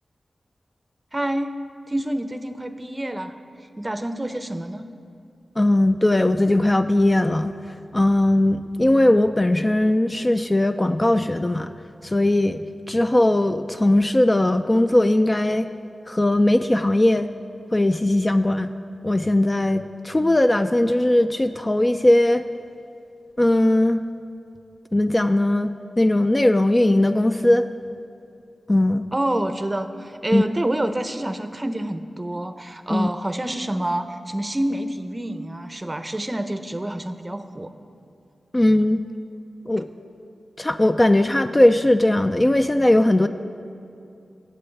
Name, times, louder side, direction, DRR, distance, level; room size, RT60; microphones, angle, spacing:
voice 1, 1.1-1.5 1.9-3.3 3.8-4.9 29.1-37.7, right 1 dB, 20° right, 9 dB, 0.6 m, -27 dB
voice 2, 5.6-7.5 7.9-11.7 12.0-15.7 16.1-17.3 17.7-18.7 19.0-22.4 23.4-24.0 24.9-25.7 26.0-27.7 28.7-29.1 30.3-30.4 32.9-33.1 38.5-39.0 39.7-39.9 40.6-43.3, left 1 dB, 20° left, 8 dB, 0.3 m, -19 dB
23.0 x 7.8 x 3.3 m, 2.6 s
wide cardioid pair, 80°, 0 cm